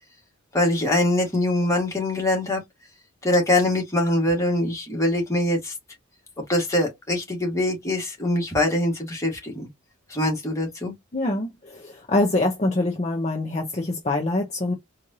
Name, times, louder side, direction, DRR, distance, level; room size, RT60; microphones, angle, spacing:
voice 1, 0.5-2.6 3.2-5.7 6.5-9.7 10.1-10.9, left 1 dB, 15° left, 1.6 m, -23 dB
voice 2, 11.1-14.7, left 2 dB, 30° left, 0.7 m, -24 dB
4.4 x 2.5 x 2.7 m
head